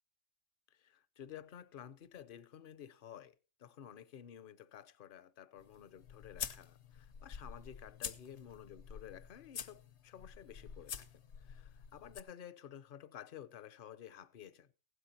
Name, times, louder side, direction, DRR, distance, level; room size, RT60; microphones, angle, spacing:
voice 1, 0.7-14.7, left 9 dB, 55° left, 0.8 m, -53 dB
sound 1, 5.6-12.2, left 7 dB, 70° left, 1.1 m, -48 dB
16.0 x 12.5 x 2.9 m
omnidirectional pair, 1.2 m